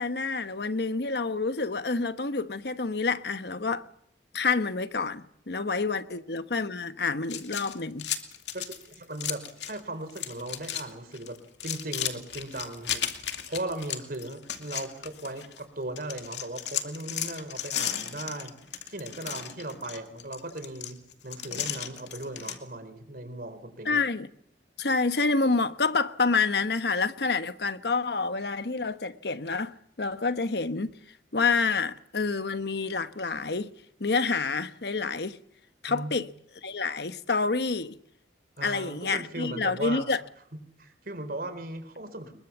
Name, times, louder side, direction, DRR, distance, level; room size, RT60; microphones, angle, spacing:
voice 1, 0.0-3.9 4.3-8.1 23.8-24.3 24.8-30.9 31.3-33.7 34.0-35.4 35.8-36.3 36.6-38.0 38.6-40.2, left 4 dB, 65° left, 1.1 m, -28 dB
sound 1, 7.2-9.8 10.1-10.8 11.1-15.6 16.0-22.6, left 10 dB, 85° left, 2.5 m, -35 dB
voice 2, 8.5-11.4 11.6-18.5 18.9-24.0 35.9-36.1 38.6-40.1 40.8-42.3, right 2 dB, 55° right, 4.1 m, -37 dB
24.0 x 22.5 x 7.3 m
head